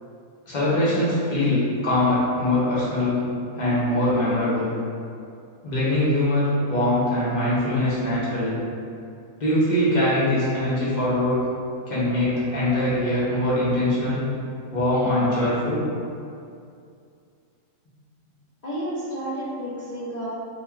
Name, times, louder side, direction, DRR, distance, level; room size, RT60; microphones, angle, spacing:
voice 1, 0.5-3.2 3.6-4.7 5.6-8.6 9.4-11.4 11.9-14.2 14.7-15.8, left 1 dB, 40° left, -9 dB, 0.7 m, -22 dB
voice 2, 18.6-20.3, right 1 dB, 70° left, -12 dB, 0.4 m, -31 dB
3.4 x 2.2 x 2.3 m, 2.5 s
omnidirectional pair, 1.5 m